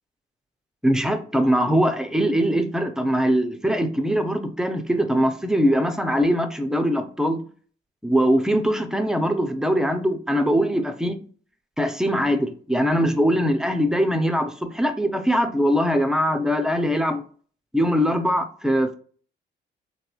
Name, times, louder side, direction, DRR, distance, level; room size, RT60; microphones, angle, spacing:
voice 1, 0.8-7.4 8.0-11.2 11.8-17.2 17.7-18.9, equal, 5° right, 0.4 m, -22 dB
3.2 x 2.9 x 2.2 m
cardioid pair, 90°, 20 cm